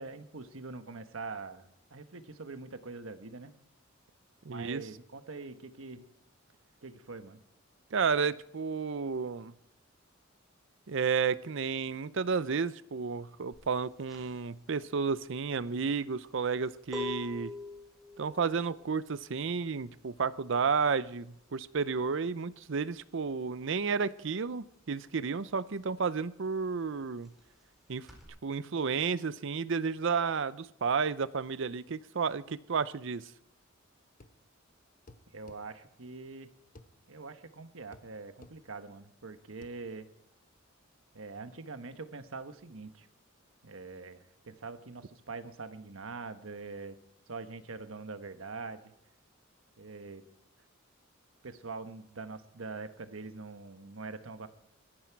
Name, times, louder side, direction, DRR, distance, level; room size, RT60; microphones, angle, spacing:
voice 1, 0.0-3.5 4.5-6.1 6.8-7.4 35.3-36.5 37.1-40.1 41.1-43.1 43.6-47.0 47.3-48.9 49.8-50.2 51.4-54.5, right 3 dB, 85° right, 9 dB, 1.2 m, -44 dB
voice 2, 4.4-4.8 7.9-9.5 10.9-17.5 18.2-27.3 27.9-28.1 28.4-33.3, right 5 dB, 65° right, 17 dB, 0.6 m, -32 dB
sound 1, 13.5-23.8 24.0-28.2, left 3 dB, ahead, 4.6 m, -46 dB
sound 2, 34.2-34.4 35.1-35.6 36.8-36.9 37.9-38.1 38.4-38.6 39.6-39.8, left 2 dB, 45° left, 1.0 m, -53 dB
21.0 x 13.5 x 4.6 m, 0.77 s
head